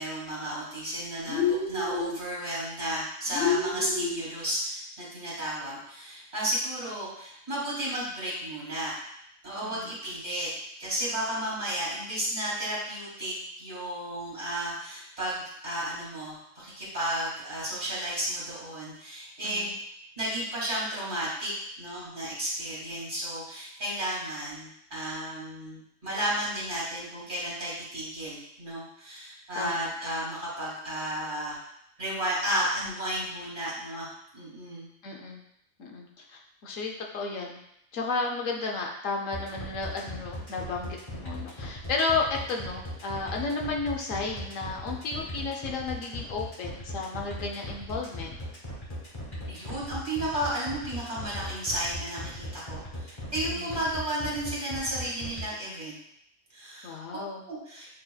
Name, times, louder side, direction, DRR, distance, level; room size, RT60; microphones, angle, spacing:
voice 1, 0.0-8.9 9.4-10.5 10.8-19.8 20.2-31.6 32.0-34.1 34.3-34.9 49.5-56.0 56.5-57.0 57.5-58.0, right 1 dB, 35° right, -7 dB, 2.1 m, -33 dB
sound 1, 1.3-2.2 3.3-4.2, left 5 dB, 50° left, 0.7 m, -28 dB
voice 2, 19.4-19.7 29.6-29.9 35.0-35.4 35.8-37.6 37.9-48.4 53.5-53.7 56.8-57.4, left 3 dB, 75° left, 0 dB, 1.0 m, -33 dB
sound 2, 39.3-55.4, left 1 dB, 25° left, 1.3 m, -38 dB
7.7 x 2.9 x 2.3 m, 0.75 s
omnidirectional pair, 1.4 m